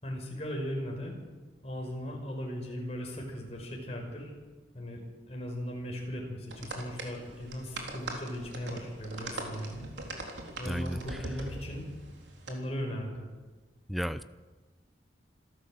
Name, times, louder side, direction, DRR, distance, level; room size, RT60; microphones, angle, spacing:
voice 1, 0.0-1.2 1.6-4.3 4.7-9.9 10.6-11.9 12.5-13.3, equal, 35° left, 0 dB, 5.5 m, -38 dB
sound 1, 6.5-12.5, right 2 dB, 85° right, 3.7 m, -42 dB
voice 2, 10.7-11.0 13.9-14.2, equal, ahead, 13 dB, 0.6 m, -32 dB
26.5 x 13.0 x 7.8 m, 1.3 s
head